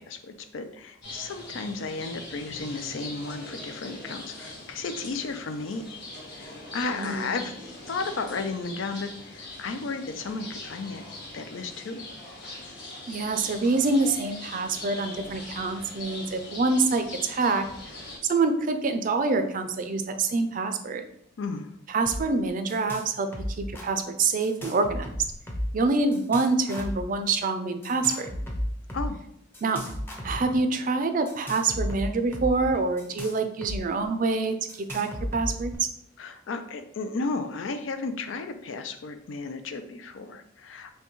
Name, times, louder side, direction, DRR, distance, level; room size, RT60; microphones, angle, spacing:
voice 1, 0.0-5.9 6.3-7.5 7.9-11.0 11.3-12.0 21.4-21.7 28.9-29.2 36.2-40.9, left 3 dB, 85° left, 8 dB, 0.5 m, -34 dB
sound 1, 1.0-18.2, left 2 dB, 60° left, 1.5 m, -42 dB
voice 2, 7.0-7.4 13.1-17.6 18.3-21.0 21.9-23.3 23.6-25.2 25.7-28.3 29.6-29.8 30.2-35.7, right 3 dB, 45° right, 8 dB, 0.4 m, -26 dB
sound 2, 22.0-22.2 22.5-23.1 23.3-23.9 24.4-25.8 26.1-27.0 27.8-29.1 29.5-30.6 31.3-33.8 34.0-34.1 34.7-35.8, equal, 10° left, 0.6 m, -34 dB
5.7 x 2.2 x 3.0 m, 0.70 s
head